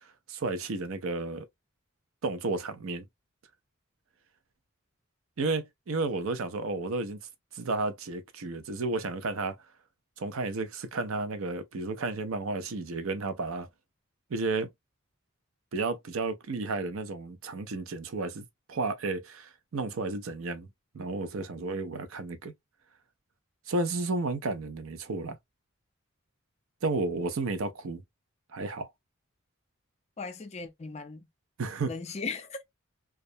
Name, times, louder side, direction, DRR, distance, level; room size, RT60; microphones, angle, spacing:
voice 1, 0.3-1.4 2.2-3.0 5.4-7.2 7.6-9.6 10.2-13.7 14.3-14.7 15.7-20.7 20.9-22.5 23.7-25.4 26.8-28.0 28.5-28.9 31.6-31.9, right 3 dB, 85° right, 0.5 m, -32 dB
voice 2, 30.2-31.3 31.9-32.6, left 4 dB, 30° left, 0.4 m, -37 dB
2.3 x 2.1 x 2.6 m
head